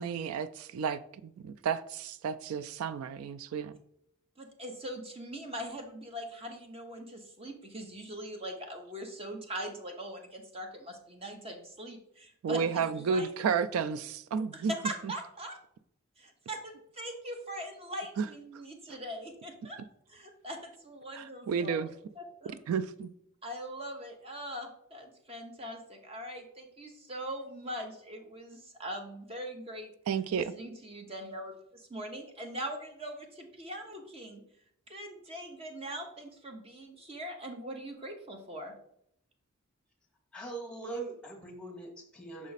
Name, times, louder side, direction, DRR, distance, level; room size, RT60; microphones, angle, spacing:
voice 1, 0.0-3.7 12.4-14.7 18.2-18.3 21.1-21.9 22.7-23.1 30.1-30.5, right 6 dB, 85° right, 0.3 m, -32 dB
voice 2, 4.4-13.3 14.5-15.6 16.2-19.8 20.1-21.9 22.2-22.5 23.4-29.9 30.4-34.4 34.9-38.7, equal, 30° right, 0.9 m, -41 dB
voice 3, 40.3-42.5, right 3 dB, 5° left, 1.2 m, -41 dB
6.1 x 4.1 x 4.0 m
head